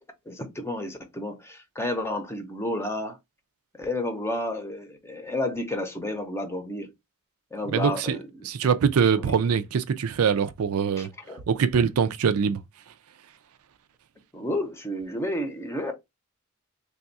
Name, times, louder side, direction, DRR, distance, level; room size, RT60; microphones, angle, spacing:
voice 1, 0.3-3.2 3.8-6.9 7.5-8.5 9.1-9.4 11.0-11.4 14.3-15.9, left 1 dB, 10° left, 0.7 m, -31 dB
voice 2, 7.7-8.2 8.4-11.1 11.5-12.6, right 6 dB, 85° right, 0.4 m, -23 dB
3.4 x 2.3 x 4.0 m
head